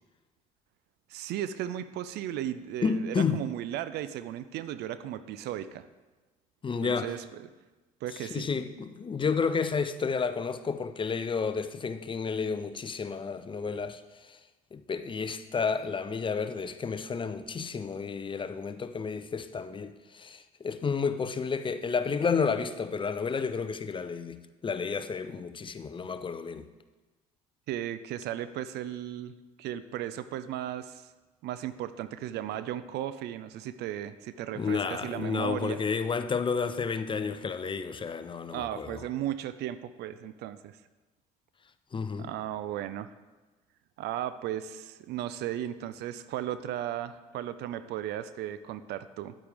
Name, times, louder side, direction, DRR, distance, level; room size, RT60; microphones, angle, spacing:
voice 1, 1.1-5.9 6.8-7.5 8.0-8.5 27.7-29.3 29.6-31.1 31.4-35.8 38.5-40.8 42.2-43.1 44.0-49.3, right 11 dB, 60° right, 0.5 m, -35 dB
voice 2, 2.8-3.4 6.6-7.1 8.3-14.0 14.3-14.4 14.7-26.7 34.6-39.0 41.9-42.3, left 5 dB, 25° left, 0.6 m, -31 dB
9.9 x 8.6 x 3.5 m
hypercardioid pair, 60°, 19 cm